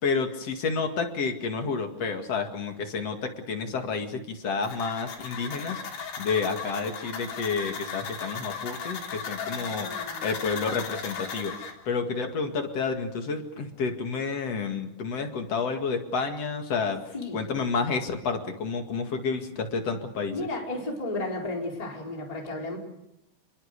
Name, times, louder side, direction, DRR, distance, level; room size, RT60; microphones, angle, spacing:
voice 1, 0.0-5.8 6.2-9.9 10.2-20.3, left 4 dB, 45° left, 5 dB, 2.5 m, -30 dB
sound 1, 4.6-11.7, left 6 dB, 70° left, 5.7 m, -36 dB
voice 2, 9.4-10.4 17.1-17.6 20.3-22.8, left 2 dB, 10° left, 0 dB, 3.9 m, -34 dB
28.0 x 22.0 x 6.7 m, 0.81 s
omnidirectional pair, 5.0 m